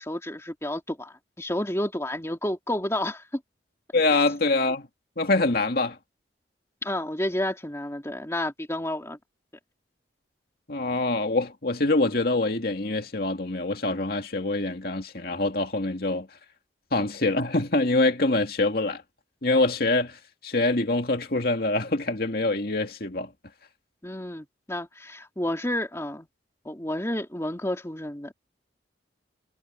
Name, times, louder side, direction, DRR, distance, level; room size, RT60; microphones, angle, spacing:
voice 1, 0.0-3.4 6.8-9.2 24.0-26.3 26.6-28.3, left 1 dB, 15° left, 2.4 m, -30 dB
voice 2, 3.9-4.9 5.2-6.0 10.7-16.3 16.9-19.0 19.4-23.3, left 2 dB, 55° left, 2.3 m, -25 dB
head